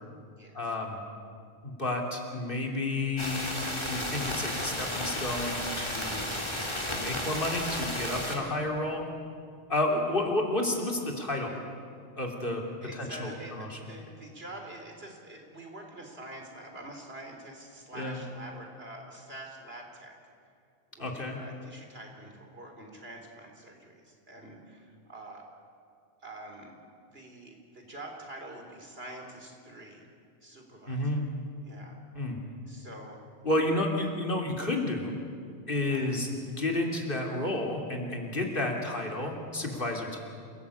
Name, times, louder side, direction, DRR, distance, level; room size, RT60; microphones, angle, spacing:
voice 1, 0.5-1.0 1.6-3.5 3.9-6.3 6.9-9.1 9.7-11.6 12.2-12.6 12.9-13.9 17.9-18.2 21.0-21.4 30.9-31.2 32.2-32.4 33.4-35.2 35.7-40.2, left 2 dB, 55° left, 1 dB, 3.4 m, -31 dB
sound 1, 3.2-8.4, left 1 dB, 25° left, 3.0 m, -33 dB
voice 2, 12.8-20.2 20.9-25.5 26.2-26.7 27.1-30.1 30.4-31.1 31.5-32.0 32.7-33.2 33.9-34.1 35.9-36.3, right 1 dB, 70° right, 2 dB, 4.0 m, -46 dB
28.0 x 18.0 x 8.5 m, 2.3 s
omnidirectional pair, 1.1 m